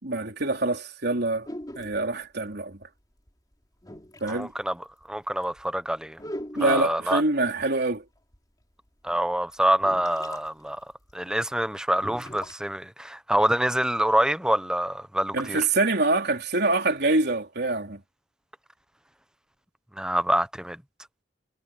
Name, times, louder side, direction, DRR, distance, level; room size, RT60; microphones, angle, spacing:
voice 1, 0.0-1.5 1.8-2.8 4.2-4.5 6.6-8.0 15.3-18.0, right 2 dB, 60° right, 3.9 m, -25 dB
sound 1, 1.4-2.0 3.3-3.4 3.8-4.4 5.0-5.1 5.4-5.6 6.2-7.0 8.3-8.4 9.1-9.2 9.8-10.5 10.7-10.8 11.1-11.2 11.9-12.5, equal, 20° left, 3.5 m, -39 dB
voice 2, 4.3-4.8 5.1-6.2 6.6-7.2 9.0-10.8 11.1-15.6 20.0-20.8, right 1 dB, 5° right, 0.8 m, -26 dB
head